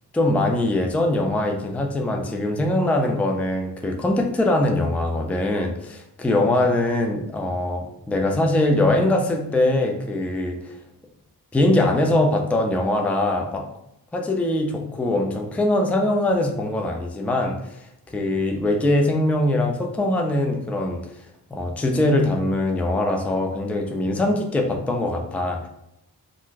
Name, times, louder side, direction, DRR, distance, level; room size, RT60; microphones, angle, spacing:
voice 1, 0.1-10.7 11.5-13.7 14.1-17.6 18.1-21.0 21.5-25.7, left 1 dB, 5° left, 3 dB, 0.3 m, -22 dB
2.5 x 2.2 x 3.8 m, 0.79 s
wide cardioid pair, 80°, 39 cm